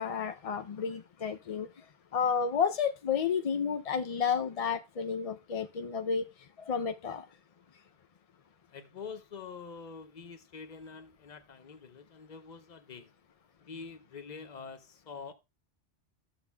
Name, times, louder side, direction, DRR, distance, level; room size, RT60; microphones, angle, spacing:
voice 1, 0.0-1.7 2.1-6.3 6.6-7.2, left 6 dB, 60° left, 0.3 m, -31 dB
voice 2, 8.7-13.1 13.6-15.3, left 5 dB, 40° left, 0.9 m, -46 dB
13.0 x 7.0 x 2.2 m
omnidirectional pair, 1.2 m